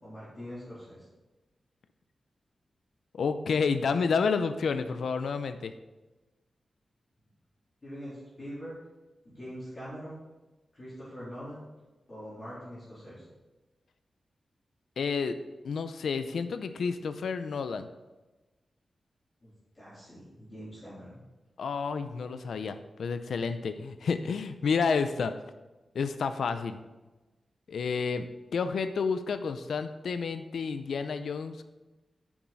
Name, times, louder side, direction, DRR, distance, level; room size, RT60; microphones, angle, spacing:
voice 1, 0.0-1.1 7.8-8.7 9.2-10.2 10.7-11.7 12.1-13.3 19.4-21.2, equal, 25° left, -11 dB, 3.6 m, -43 dB
voice 2, 3.1-5.7 15.0-15.4 15.6-17.9 21.6-25.3 25.9-26.8 27.7-28.3 28.5-31.6, left 5 dB, 80° left, 10 dB, 0.5 m, -30 dB
9.5 x 7.3 x 4.0 m, 1.1 s
wide cardioid pair, 180°, 0 cm